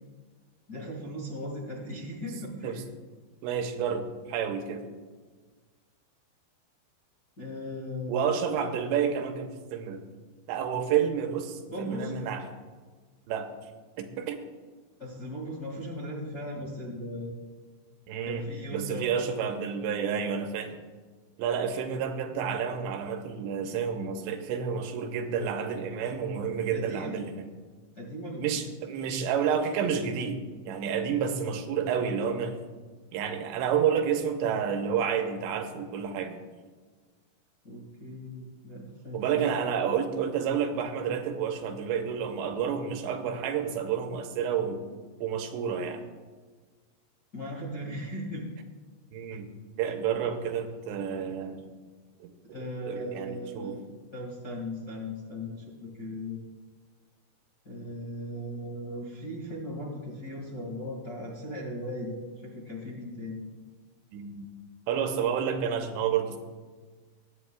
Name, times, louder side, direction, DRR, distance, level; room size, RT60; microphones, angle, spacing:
voice 1, 0.7-2.8 7.4-8.5 11.7-12.1 15.0-17.3 18.2-19.3 20.1-20.3 26.7-27.2 27.9-28.5 37.6-39.5 47.3-48.5 52.5-53.8 54.1-56.4 57.6-63.4, equal, 40° left, -5 dB, 1.4 m, -37 dB
voice 2, 3.4-4.8 8.1-10.0 10.5-12.4 13.3-13.5 14.0-14.4 18.1-18.4 18.7-20.8 21.4-27.5 28.4-32.6 33.1-36.4 39.1-44.8 45.2-46.0 49.1-49.5 49.8-51.6 52.2-52.3 52.6-53.7 64.1-64.5 64.9-66.4, right 7 dB, 90° right, 5 dB, 3.1 m, -30 dB
23.0 x 9.2 x 2.3 m, 1.4 s
omnidirectional pair, 5.0 m